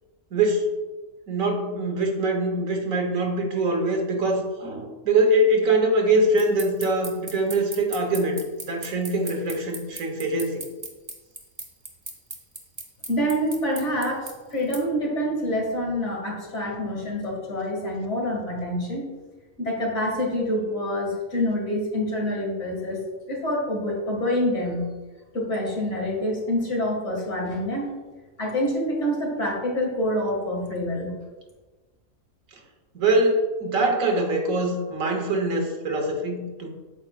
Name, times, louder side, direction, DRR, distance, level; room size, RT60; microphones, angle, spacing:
voice 1, 0.3-0.7 1.3-10.6 32.9-36.7, right 2 dB, 75° right, 3 dB, 1.5 m, -23 dB
sound 1, 6.4-14.8, right 3 dB, 25° right, 1.0 m, -36 dB
voice 2, 13.1-19.1 19.6-23.0 23.3-24.9 25.3-27.9 28.4-31.2, equal, 60° left, -2 dB, 2.4 m, -26 dB
8.8 x 7.7 x 2.4 m, 1.2 s
omnidirectional pair, 1.4 m